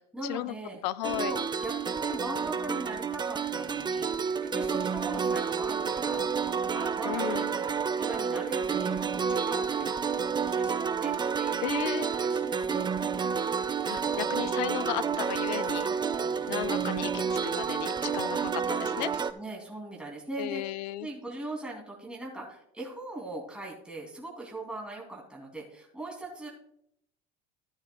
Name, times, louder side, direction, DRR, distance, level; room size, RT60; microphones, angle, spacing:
voice 1, 0.0-0.8 1.1-11.8 12.1-12.9 13.4-14.5 15.7-17.2 18.2-18.5 18.8-20.6 21.0-26.5, right 2 dB, 5° right, -2 dB, 2.8 m, -41 dB
voice 2, 0.8-1.3 7.1-7.5 11.6-12.1 13.9-15.9 16.5-19.1 20.4-21.1, left 15 dB, 80° left, 16 dB, 0.5 m, -34 dB
sound 1, 1.0-19.3, right 6 dB, 20° right, 0.5 m, -30 dB
14.0 x 8.9 x 2.3 m, 0.72 s
hypercardioid pair, 80°, 21 cm